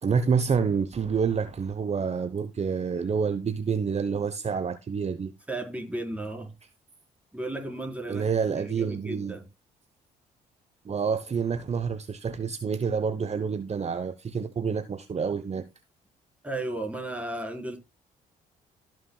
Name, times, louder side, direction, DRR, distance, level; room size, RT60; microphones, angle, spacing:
voice 1, 0.0-5.3 8.1-9.4 10.8-15.7, right 6 dB, 35° right, 0.9 m, -28 dB
voice 2, 5.5-6.5 7.3-8.2 8.6-9.5 16.4-17.8, right 2 dB, 5° right, 4.3 m, -34 dB
16.0 x 6.3 x 2.3 m
hypercardioid pair, 50°, 19 cm